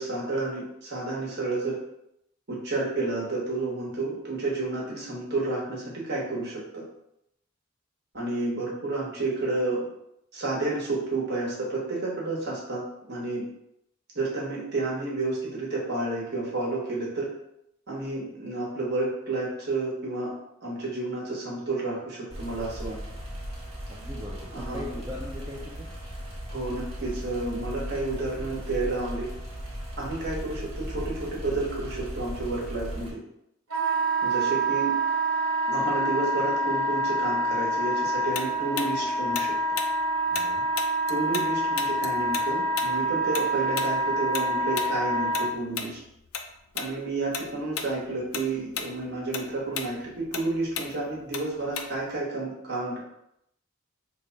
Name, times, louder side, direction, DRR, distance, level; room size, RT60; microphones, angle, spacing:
voice 1, 0.0-1.8 2.5-6.8 8.1-9.8 10.3-12.8 13.1-13.4 14.1-17.3 17.9-20.3 20.6-22.9 24.5-24.8 26.5-29.3 30.0-33.2 34.2-34.9 35.7-39.5 41.1-46.0 46.7-53.0, right 2 dB, 50° right, -5 dB, 1.1 m, -30 dB
sound 1, 22.3-33.1, equal, 30° right, 0.9 m, -37 dB
voice 2, 23.9-25.9 40.3-40.7, left 1 dB, 15° right, -4 dB, 0.3 m, -40 dB
Wind instrument woodwind instrument, 33.7-45.5, right 1 dB, 80° right, 0.7 m, -26 dB
Tick-tock, 38.3-41.5 41.8-46.5 46.8-47.0 47.3-47.9 48.2-52.2, left 7 dB, 90° left, 0.4 m, -35 dB
3.3 x 2.2 x 3.9 m, 0.80 s
head